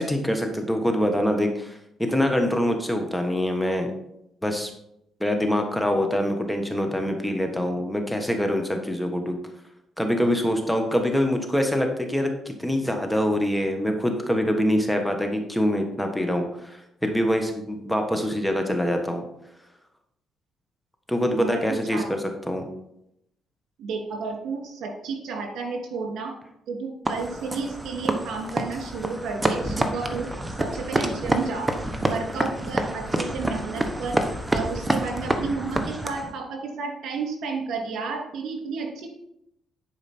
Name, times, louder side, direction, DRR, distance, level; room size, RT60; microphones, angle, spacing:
voice 1, 0.0-3.9 4.4-4.7 5.2-9.4 10.0-19.2 21.1-22.6, equal, 5° left, 4 dB, 1.3 m, -24 dB
voice 2, 21.4-22.0 23.8-26.3 26.7-31.7 32.0-34.2 34.5-39.1, right 4 dB, 75° right, 1 dB, 2.6 m, -32 dB
sound 1, 27.1-36.3, right 1 dB, 15° right, 1.1 m, -28 dB
11.0 x 4.9 x 4.4 m, 0.78 s
cardioid pair, 90°, 0 cm